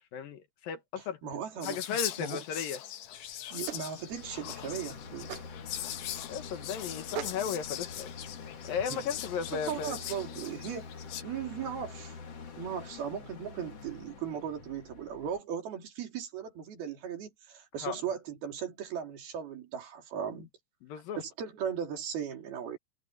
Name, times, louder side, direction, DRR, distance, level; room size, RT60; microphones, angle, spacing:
voice 1, 0.1-1.2 1.6-2.8 6.3-8.1 8.6-9.9 17.8-18.0 20.8-21.2, left 7 dB, 65° left, 2.9 m, -35 dB
voice 2, 1.2-1.8 2.2-2.4 3.5-5.3 9.5-10.9 11.2-12.2 12.6-20.5 21.2-22.8, right 8 dB, 65° right, 5.1 m, -37 dB
Whispering, 1.6-11.2, left 12 dB, 90° left, 3.6 m, -41 dB
sound 1, 3.0-9.1, right 12 dB, 90° right, 3.4 m, -45 dB
sound 2, 4.1-15.4, left 5 dB, 45° left, 2.8 m, -46 dB
omnidirectional pair, 4.7 m